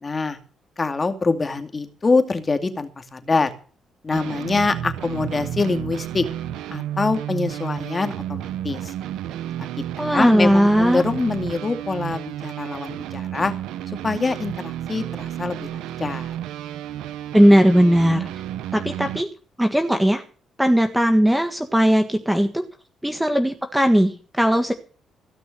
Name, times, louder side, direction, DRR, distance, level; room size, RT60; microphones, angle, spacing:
voice 1, 0.0-0.4 0.8-3.5 4.0-6.3 6.7-8.8 10.0-13.5 14.0-16.3, left 3 dB, 30° left, 8 dB, 2.4 m, -24 dB
sound 1, 4.1-19.2, right 11 dB, 85° right, 0.8 m, -32 dB
voice 2, 10.0-11.0 17.3-18.3 18.7-19.3 19.6-20.2 20.6-22.6 23.0-24.7, equal, 5° right, 6 dB, 1.6 m, -18 dB
16.5 x 6.1 x 7.7 m, 0.39 s
supercardioid pair, 65°, 0 cm